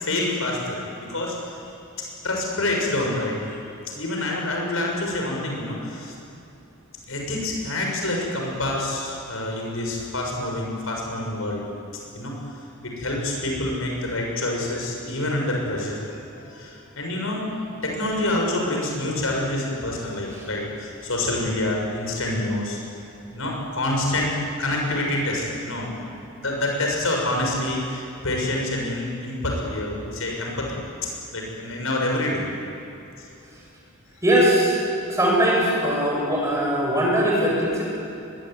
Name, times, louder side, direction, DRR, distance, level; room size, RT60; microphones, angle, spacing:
voice 1, 0.0-1.6 2.2-3.6 3.9-6.1 7.1-11.6 12.1-12.3 12.8-16.0 16.3-17.5 17.8-22.8 23.3-26.0 26.3-32.4 33.2-33.3, left 1 dB, 75° left, 0 dB, 6.7 m, -27 dB
voice 2, 34.2-34.8 35.1-37.8, right 1 dB, 15° right, -3 dB, 7.5 m, -20 dB
22.5 x 22.5 x 9.5 m, 2.9 s
head